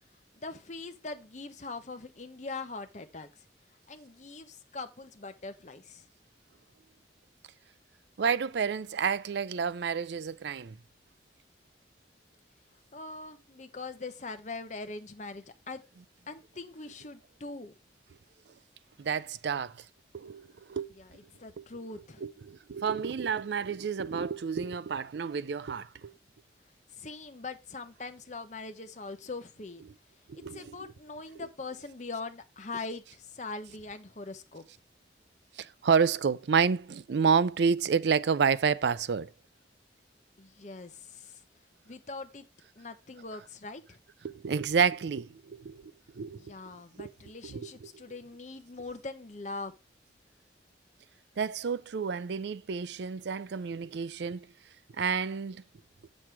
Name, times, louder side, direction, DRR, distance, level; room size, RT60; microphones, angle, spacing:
voice 1, 0.4-3.3 3.9-6.1 12.9-15.8 16.3-17.7 21.0-22.2 26.9-29.9 30.5-34.6 40.4-41.4 41.8-42.4 42.8-44.0 46.3-49.7, left 3 dB, 40° left, 0.8 m, -42 dB
voice 2, 8.2-10.8 19.0-19.9 20.1-20.9 21.6-21.7 22.2-26.1 30.3-30.9 35.6-39.3 44.2-46.5 47.0-47.1 47.4-47.9 51.4-54.5 55.0-55.6, right 6 dB, 70° right, 0.4 m, -29 dB
7.3 x 6.4 x 4.5 m
head